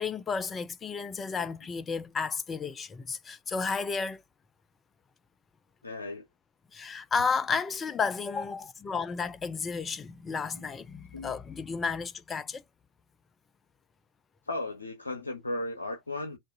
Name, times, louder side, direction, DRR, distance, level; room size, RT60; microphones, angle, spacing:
voice 1, 0.0-4.2 6.7-12.6, left 5 dB, 20° left, 0.5 m, -32 dB
voice 2, 5.8-6.2 10.6-10.7 11.1-11.3 14.5-16.4, left 2 dB, 90° left, 0.8 m, -35 dB
3.8 x 2.6 x 3.8 m
hypercardioid pair, 100°, 0 cm